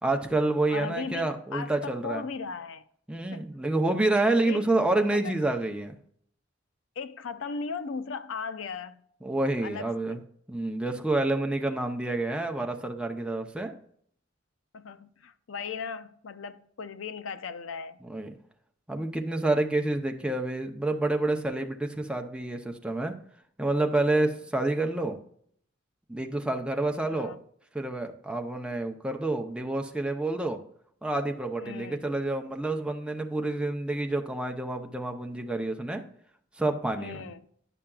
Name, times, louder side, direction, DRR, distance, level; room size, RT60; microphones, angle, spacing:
voice 1, 0.0-2.2 3.1-6.0 9.2-10.2 10.5-13.8 18.1-18.3 18.9-23.1 23.6-25.2 26.1-27.3 27.7-30.6 31.0-36.0 36.6-37.3, right 2 dB, 5° right, 0.6 m, -28 dB
voice 2, 0.7-2.8 3.3-3.5 4.4-4.6 5.1-5.3 7.0-9.0 9.6-10.2 14.7-18.0 27.1-27.4 31.6-32.1 37.0-37.5, left 5 dB, 90° left, 0.5 m, -37 dB
9.9 x 5.7 x 2.4 m
head